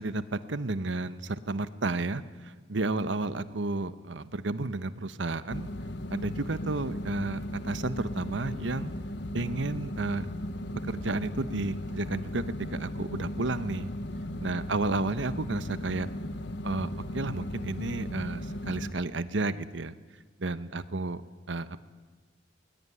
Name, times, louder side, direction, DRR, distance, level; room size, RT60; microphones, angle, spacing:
voice 1, 0.0-5.7 6.1-8.9 9.3-10.3 10.8-12.4 12.7-13.9 14.4-16.1 16.6-19.9 20.4-21.2 21.5-21.8, right 2 dB, 75° right, 14 dB, 1.0 m, -32 dB
sound 1, 5.5-18.9, left 1 dB, 60° left, 1.0 m, -37 dB
20.5 x 19.5 x 9.8 m, 1.4 s
head